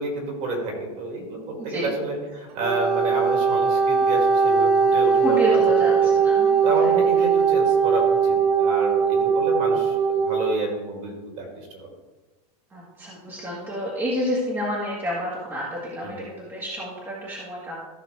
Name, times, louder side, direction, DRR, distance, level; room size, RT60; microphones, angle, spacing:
voice 1, 0.0-5.6 6.0-6.1 6.6-11.4 11.7-11.9 16.0-16.1, right 2 dB, 40° right, 0 dB, 2.7 m, -30 dB
voice 2, 1.6-1.9 5.2-6.0 6.2-6.9 12.7-17.9, equal, 10° right, -6 dB, 1.8 m, -29 dB
Wind instrument woodwind instrument, 2.5-10.6, right 6 dB, 70° right, 1.3 m, -20 dB
14.0 x 5.7 x 3.4 m, 1.2 s
supercardioid pair, 160°, 20 cm